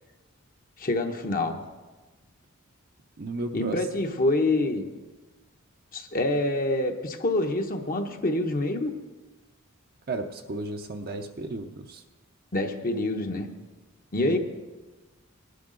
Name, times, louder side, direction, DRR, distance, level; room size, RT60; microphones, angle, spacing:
voice 1, 0.8-1.6 3.5-4.8 5.9-9.0 12.5-13.5 14.1-14.4, left 2 dB, 45° left, 4 dB, 0.9 m, -26 dB
voice 2, 3.2-3.9 10.1-12.0 14.2-14.4, right 2 dB, 45° right, 4 dB, 0.7 m, -34 dB
19.0 x 11.5 x 3.9 m, 1.2 s
head